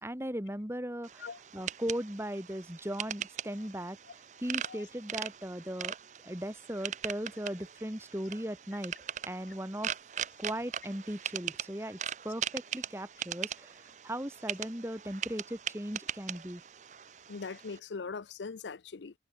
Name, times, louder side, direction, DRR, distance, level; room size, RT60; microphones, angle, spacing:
voice 1, 0.0-4.0 4.4-5.9 6.2-8.9 9.2-9.9 10.4-12.0 12.2-13.7 14.0-16.6, equal, 15° right, 2.1 m, -38 dB
sound 1, 1.0-17.8, right 9 dB, 45° right, 0.6 m, -40 dB
voice 2, 17.3-19.1, left 4 dB, 90° left, 0.6 m, -41 dB
head